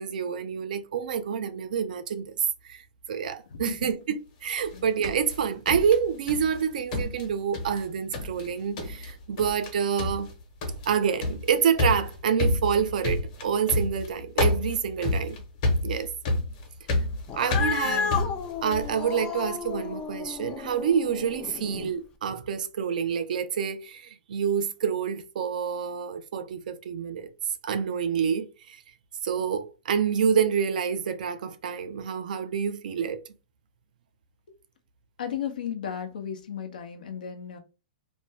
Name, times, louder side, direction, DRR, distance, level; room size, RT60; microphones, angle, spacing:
voice 1, 0.0-2.8 3.1-10.3 10.9-15.4 15.8-16.1 17.3-18.2 18.6-27.3 27.6-28.8 29.2-33.2, right 7 dB, 70° right, 0.5 m, -27 dB
voice 2, 3.5-3.9 4.7-4.8 17.8-18.2 35.2-37.6, left 8 dB, 80° left, 0.7 m, -35 dB
sound 1, 4.6-6.6 6.9-7.9 8.1-8.5 8.8-9.1 9.4-9.7 10.0-19.0, left 2 dB, 50° left, 1.1 m, -29 dB
Cat, 17.3-21.9, left 7 dB, 20° left, 0.4 m, -32 dB
2.6 x 2.2 x 3.3 m
hypercardioid pair, 140°, 5 cm